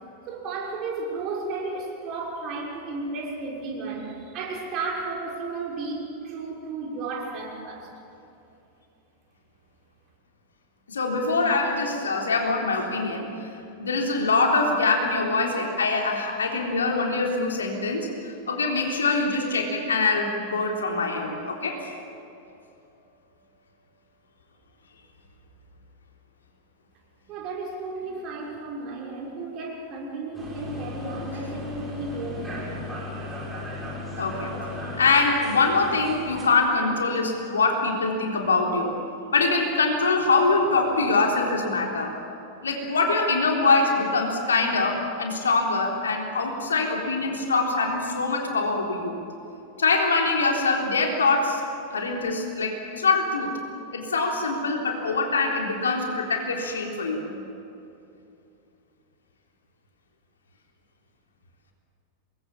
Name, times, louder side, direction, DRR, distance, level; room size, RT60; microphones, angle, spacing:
voice 1, 0.3-7.9 27.3-32.7, right 3 dB, 40° right, -2 dB, 6.3 m, -33 dB
voice 2, 10.9-13.5 13.8-21.9 34.2-34.6 35.0-38.9 39.3-42.1 42.6-49.2 49.8-51.6 51.9-53.5 53.9-57.5, left 3 dB, 70° left, 1 dB, 3.6 m, -24 dB
sound 1, 30.3-36.4, left 2 dB, 10° right, 6.9 m, -36 dB
27.0 x 21.5 x 7.4 m, 2.8 s
figure-of-eight pair, 90°, 0 cm